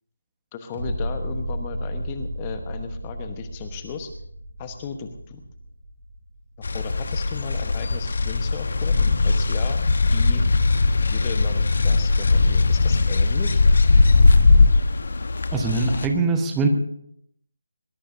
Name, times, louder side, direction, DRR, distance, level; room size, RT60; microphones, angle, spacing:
voice 1, 0.5-4.1 4.6-5.4 6.7-9.8 10.1-10.4 11.1-13.6, left 6 dB, 20° left, 7 dB, 1.2 m, -35 dB
sound 1, 0.7-7.8 8.2-8.3, equal, 35° right, 6.6 m, -34 dB
sound 2, 6.6-16.1, left 3 dB, 50° left, 1.2 m, -19 dB
voice 2, 15.5-16.7, right 3 dB, 10° right, 4 dB, 1.2 m, -22 dB
21.5 x 20.5 x 2.7 m, 0.73 s
figure-of-eight pair, 155°, 0 cm